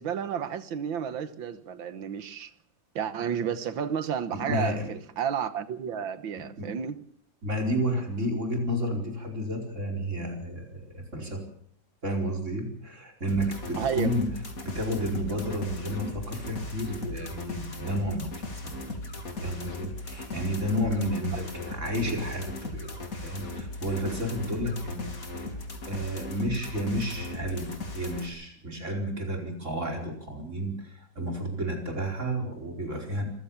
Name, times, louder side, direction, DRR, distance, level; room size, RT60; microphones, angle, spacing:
voice 1, 0.0-2.5 3.0-7.0 13.8-14.1 21.3-21.5, right 8 dB, 85° right, 12 dB, 2.0 m, -31 dB
voice 2, 4.3-4.9 6.4-6.7 7.4-11.4 12.0-14.3 14.6-19.0 19.4-25.2 25.9-33.2, equal, 40° right, 2 dB, 5.0 m, -31 dB
sound 1, 13.3-28.3, left 2 dB, 45° left, 3.3 m, -38 dB
25.5 x 15.0 x 7.2 m, 0.66 s
omnidirectional pair, 2.1 m